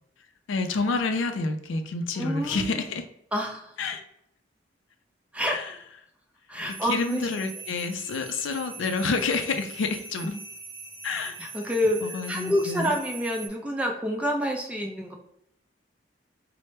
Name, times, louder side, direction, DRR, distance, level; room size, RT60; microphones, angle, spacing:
voice 1, 0.5-3.0 3.8-4.0 5.5-5.7 6.8-10.4 11.0-11.4 12.0-12.9, left 4 dB, 85° left, 7 dB, 0.4 m, -28 dB
voice 2, 2.2-2.8 3.3-3.7 5.3-5.6 6.5-7.3 11.4-15.1, equal, 5° right, 1 dB, 0.4 m, -28 dB
sound 1, 6.7-13.5, right 3 dB, 55° right, 0.8 m, -42 dB
4.3 x 2.0 x 3.1 m, 0.75 s
head